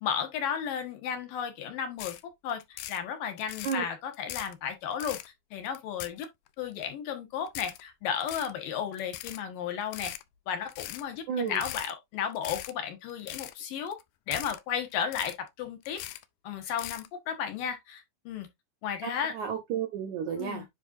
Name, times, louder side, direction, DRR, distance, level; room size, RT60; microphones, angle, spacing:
voice 1, 0.0-6.3 6.6-10.1 10.5-14.0 14.3-16.0 16.4-18.5 18.8-19.3 20.4-20.7, left 8 dB, 65° left, 2.8 m, -34 dB
sound 1, 2.0-2.2 2.5-3.0 3.4-3.8 4.1-4.5 4.9-5.3 5.7-6.5 6.8-6.9 7.5-7.8 8.2-8.5 8.9-9.4 9.8-10.2 10.7-11.0 11.5-11.9 12.3-12.7 13.1-13.5 13.9-14.0 14.3-14.6 14.9-15.5 15.9-16.2 16.6-17.1, left 14 dB, 85° left, 1.8 m, -40 dB
voice 2, 11.3-11.6 19.0-20.6, right 7 dB, 75° right, 1.8 m, -32 dB
10.0 x 4.3 x 2.6 m
omnidirectional pair, 4.5 m